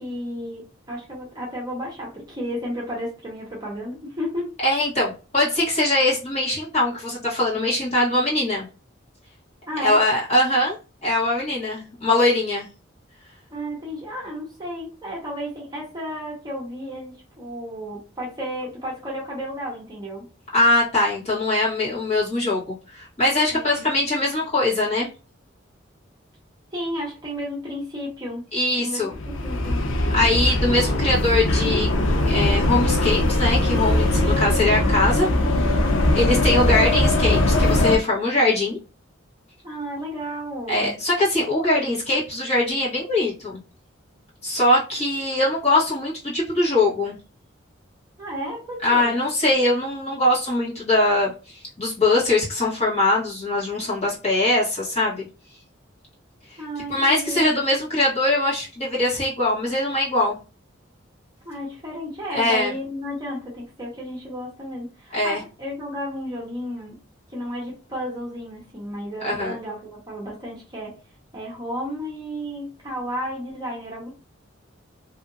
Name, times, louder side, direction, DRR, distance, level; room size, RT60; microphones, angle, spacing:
voice 1, 0.0-4.5 9.7-10.0 13.5-20.2 23.5-23.8 26.7-28.5 28.8-29.1 29.4-29.8 39.6-41.0 48.2-49.2 56.6-57.5 61.4-67.0 67.3-70.9 71.3-74.1, equal, 20° right, -3 dB, 0.8 m, -32 dB
voice 2, 4.6-8.7 9.8-10.8 11.0-12.7 20.5-25.1 28.5-29.1 30.1-32.0 32.2-35.3 36.1-38.8 40.7-43.6 44.4-47.1 48.8-55.2 56.5-56.6 56.9-60.4 62.3-62.7 65.1-65.4 69.2-69.6, left 2 dB, 35° left, -8 dB, 1.4 m, -22 dB
sound 1, 29.1-38.0, left 1 dB, 80° left, 0.5 m, -20 dB
2.7 x 2.5 x 2.6 m, 0.33 s
head